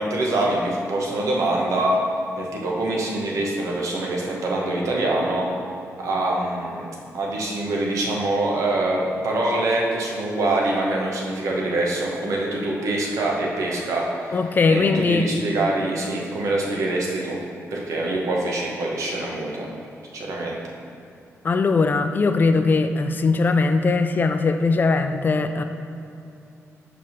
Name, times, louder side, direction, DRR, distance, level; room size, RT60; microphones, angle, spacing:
voice 1, 0.0-1.9 2.4-5.5 6.0-6.9 7.1-14.4 14.7-17.4 17.7-19.7 20.1-20.6, right 2 dB, 85° right, -2 dB, 1.1 m, -24 dB
voice 2, 14.3-15.3 21.4-25.6, left 4 dB, 35° left, 8 dB, 0.3 m, -20 dB
5.1 x 3.6 x 5.7 m, 2.6 s
cardioid pair, 110°, 5 cm